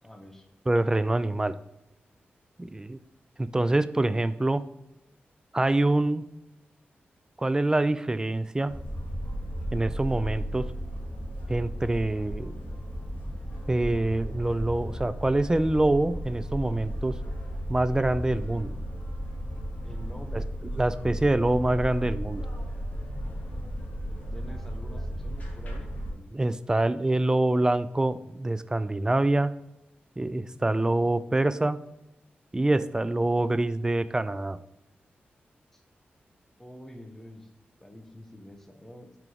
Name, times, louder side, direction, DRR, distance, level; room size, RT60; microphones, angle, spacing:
voice 1, 0.0-0.5 19.8-20.4 24.3-26.3 30.2-30.6 35.7-35.8 36.6-37.5 37.8-39.2, left 1 dB, 10° left, 4 dB, 1.1 m, -47 dB
voice 2, 0.7-1.5 2.6-3.0 3.4-4.6 5.5-6.2 7.4-8.7 9.7-10.6 11.5-12.6 13.7-17.1 17.7-18.7 20.3-20.4 20.8-22.4 26.3-29.5 30.2-31.8 32.5-34.6, right 2 dB, 20° right, 14 dB, 0.4 m, -25 dB
sound 1, 8.7-26.1, equal, 45° left, 2.1 m, -35 dB
6.0 x 4.5 x 3.5 m, 0.92 s
wide cardioid pair, 80°, 4 cm